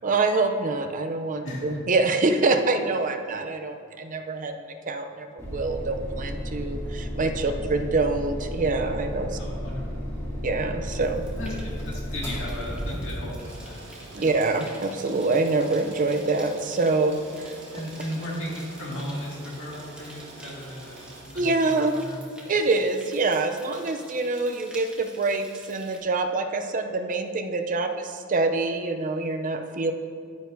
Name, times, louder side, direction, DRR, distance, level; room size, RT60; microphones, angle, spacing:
voice 1, 0.0-9.4 10.4-11.2 14.1-17.2 17.4-17.5 21.4-22.0 22.5-29.9, right 3 dB, 40° right, 6 dB, 0.5 m, -25 dB
voice 2, 1.4-1.8 7.4-7.6 9.3-10.0 11.4-13.9 14.2-14.3 17.7-22.5, equal, 65° left, -5 dB, 2.1 m, -36 dB
sound 1, 5.4-13.4, equal, 15° left, 2.0 m, -33 dB
sound 2, 10.9-26.0, right 1 dB, 5° right, 1.1 m, -49 dB
sound 3, 13.4-21.2, right 2 dB, 55° right, 2.0 m, -46 dB
10.0 x 9.5 x 2.7 m, 2.2 s
head